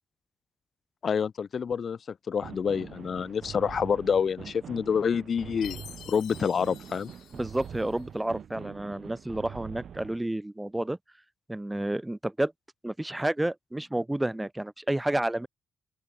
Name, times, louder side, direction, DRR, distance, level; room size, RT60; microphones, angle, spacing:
voice 1, 1.0-2.0 2.3-7.1, left 6 dB, 50° left, 0.4 m, -27 dB
sound 1, 2.4-10.2, right 8 dB, 60° right, 0.8 m, -44 dB
Chime, 5.6-8.1, left 11 dB, 85° left, 1.9 m, -48 dB
voice 2, 7.3-11.0 11.5-12.5 12.8-15.5, right 1 dB, 10° right, 0.5 m, -30 dB
open air
cardioid pair, 110°, 0 cm